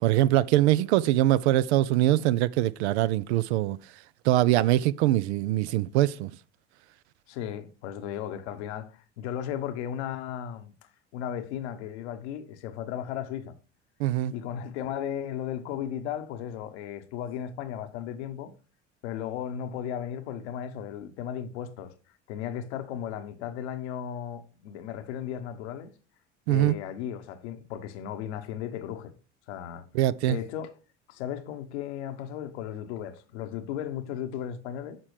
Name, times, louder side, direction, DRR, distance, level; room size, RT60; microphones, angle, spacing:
voice 1, 0.0-3.8 4.2-6.3 14.0-14.3 26.5-26.7 29.9-30.4, right 14 dB, 70° right, 0.5 m, -23 dB
voice 2, 7.3-10.7 11.1-13.6 14.3-18.5 19.0-21.9 22.3-25.9 26.5-29.1 29.5-29.9 30.2-30.7 31.1-35.0, left 9 dB, 70° left, 1.0 m, -35 dB
9.5 x 6.0 x 3.2 m
figure-of-eight pair, 60°, 35 cm